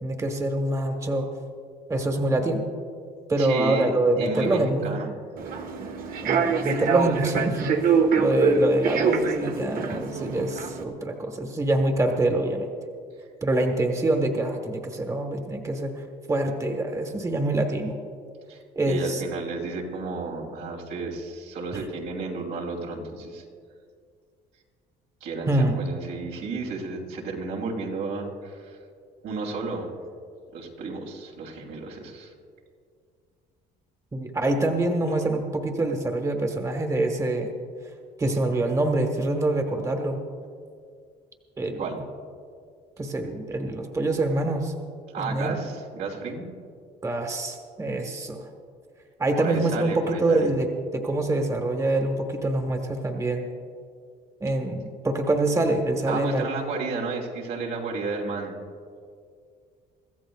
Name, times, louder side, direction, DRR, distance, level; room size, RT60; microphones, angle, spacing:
voice 1, 0.0-1.3 1.9-2.6 3.3-4.9 6.2-12.7 13.4-15.9 16.3-17.9 18.7-19.2 21.7-21.8 25.5-25.8 34.1-37.5 38.2-40.2 41.6-41.8 43.0-44.7 45.2-45.5 47.0-48.5 49.2-53.4 54.4-56.5, right 2 dB, 20° right, 3 dB, 1.4 m, -25 dB
voice 2, 3.4-5.1 18.5-18.6 18.9-23.4 25.2-28.8 29.2-30.0 30.5-32.3 41.8-42.0 45.1-46.5 49.4-50.5 56.1-58.6, right 4 dB, 85° right, -2 dB, 3.0 m, -32 dB
Human voice / Subway metro underground, 5.4-10.8, right 5 dB, 60° right, 1.3 m, -25 dB
25.0 x 14.0 x 2.4 m, 2.2 s
cardioid pair, 110°, 17 cm